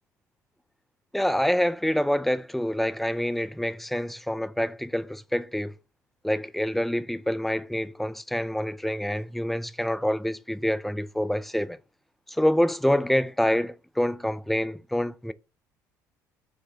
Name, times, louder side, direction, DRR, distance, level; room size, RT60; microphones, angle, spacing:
voice 1, 1.1-5.8 6.2-11.8 12.3-15.3, equal, ahead, 0.3 m, -26 dB
4.9 x 2.1 x 4.3 m
figure-of-eight pair, 55°, 9 cm